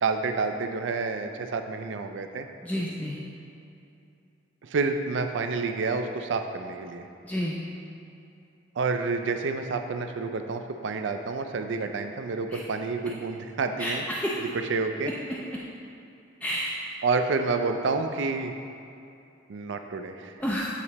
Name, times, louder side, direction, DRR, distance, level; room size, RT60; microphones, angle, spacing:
voice 1, 0.0-2.5 4.6-7.1 8.8-14.0 14.4-15.1 17.0-18.5 19.5-20.4, right 4 dB, 70° right, 6 dB, 0.4 m, -29 dB
voice 2, 2.6-3.2 7.2-7.6 12.5-12.6 13.8-14.3 16.4-16.7 20.4-20.7, equal, 10° left, -6 dB, 0.4 m, -29 dB
8.2 x 2.9 x 4.1 m, 2.7 s
head